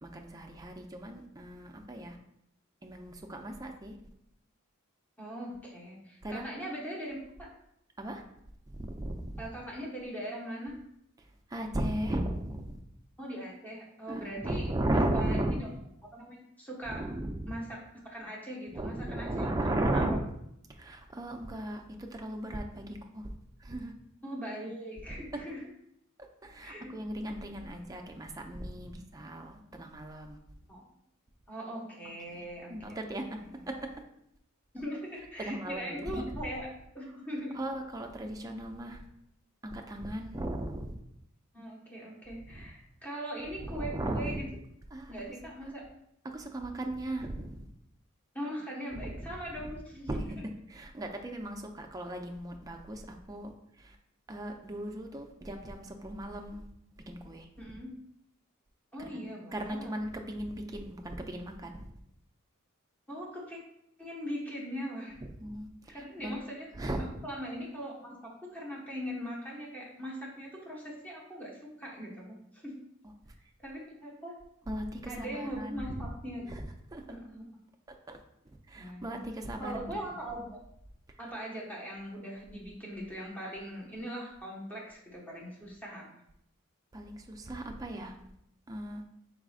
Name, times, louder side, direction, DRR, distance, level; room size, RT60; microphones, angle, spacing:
voice 1, 0.0-2.2 2.8-4.0 6.2-6.5 8.0-8.2 8.7-9.5 11.2-12.8 14.1-15.6 16.9-17.5 18.7-20.2 20.7-23.3 23.6-23.9 25.3-25.4 26.2-30.4 32.3-32.4 32.7-33.9 35.4-36.2 37.5-39.1 39.6-40.9 42.5-42.7 43.6-44.5 44.9-45.1 45.6-45.7 46.2-47.7 49.0-49.3 49.6-49.7 50.1-50.4 50.7-54.0 54.3-56.7 57.1-57.5 59.1-59.2 59.5-61.9 65.4-66.3 66.8-67.1 73.3-73.4 74.7-76.1 76.5-77.1 78.1-78.2 78.7-80.1 86.9-88.2 88.7-89.0, right 1 dB, 15° right, 3 dB, 0.4 m, -36 dB
voice 2, 5.2-7.5 9.4-10.8 13.2-15.7 16.0-17.1 17.5-17.8 18.0-19.6 19.9-20.0 24.2-25.7 26.6-26.9 30.7-30.8 31.5-32.7 34.7-36.7 36.9-37.6 41.5-44.5 45.1-45.9 48.3-50.2 57.6-58.0 58.9-59.9 63.1-63.6 64.0-65.2 65.9-66.7 67.0-72.7 73.6-74.4 75.1-76.5 77.1-77.4 78.7-79.2 79.6-80.6 81.2-86.1, equal, 10° left, -4 dB, 1.1 m, -40 dB
4.8 x 4.1 x 2.4 m, 0.76 s
head